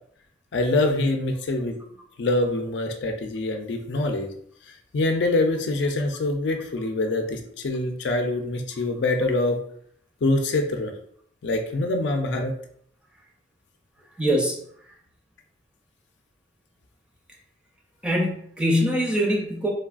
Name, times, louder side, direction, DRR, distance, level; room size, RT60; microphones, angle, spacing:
voice 1, 0.5-1.8 2.2-4.3 4.7-9.6 10.2-10.9 11.4-12.5, left 2 dB, 80° left, 4 dB, 0.4 m, -25 dB
voice 2, 14.2-14.6 18.0-19.7, equal, 5° right, -2 dB, 0.5 m, -23 dB
3.3 x 2.3 x 2.4 m, 0.65 s
head